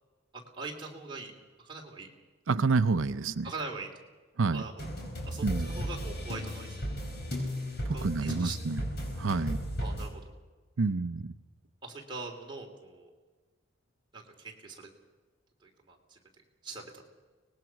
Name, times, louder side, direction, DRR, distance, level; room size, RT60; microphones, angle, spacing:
voice 1, 0.5-1.3 1.6-2.1 3.4-3.9 4.5-4.9 5.2-6.9 7.9-8.6 9.8-10.2 11.8-13.1 14.1-14.9 15.6-16.2 16.6-17.0, right 3 dB, 25° right, -1 dB, 3.1 m, -42 dB
voice 2, 2.5-3.5 4.4-4.6 5.4-5.8 8.0-8.8 9.2-9.6 10.8-11.3, right 4 dB, 80° right, 12 dB, 0.6 m, -28 dB
sound 1, 4.8-10.1, equal, 55° left, 5.0 m, -35 dB
24.0 x 19.5 x 5.9 m, 1.4 s
head